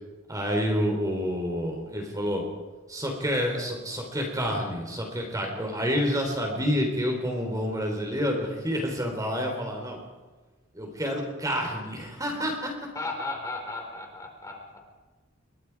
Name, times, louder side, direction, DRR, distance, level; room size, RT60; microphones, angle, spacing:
voice 1, 0.3-2.4 2.9-10.0 10.7-12.9, equal, 15° right, 2 dB, 3.9 m, -28 dB
voice 2, 12.9-14.9, left 2 dB, 15° left, 1 dB, 4.6 m, -35 dB
29.0 x 23.5 x 4.8 m, 1.3 s
head